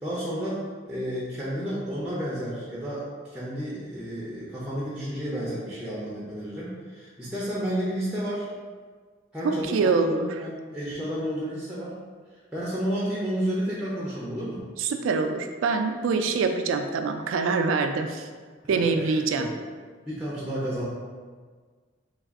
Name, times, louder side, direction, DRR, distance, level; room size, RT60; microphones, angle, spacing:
voice 1, 0.0-8.5 9.3-11.9 12.5-14.7 18.7-19.5 20.0-20.9, equal, 5° right, -8 dB, 0.5 m, -31 dB
voice 2, 9.4-10.3 14.8-18.3 18.7-19.5, right 4 dB, 80° right, 6 dB, 0.3 m, -25 dB
3.4 x 2.3 x 3.4 m, 1.5 s
head